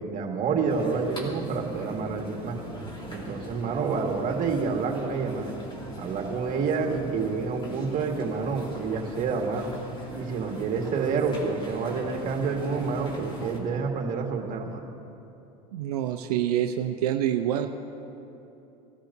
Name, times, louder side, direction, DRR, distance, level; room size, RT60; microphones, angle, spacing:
voice 1, 0.0-2.6 3.1-5.6 6.0-9.7 10.1-14.9, right 5 dB, 45° right, 2 dB, 2.0 m, -28 dB
sound 1, 0.7-13.6, equal, 25° left, 2.7 m, -41 dB
voice 2, 15.7-17.7, right 11 dB, 90° right, 5 dB, 0.6 m, -26 dB
21.0 x 13.0 x 2.8 m, 2.8 s
supercardioid pair, 100°, 19 cm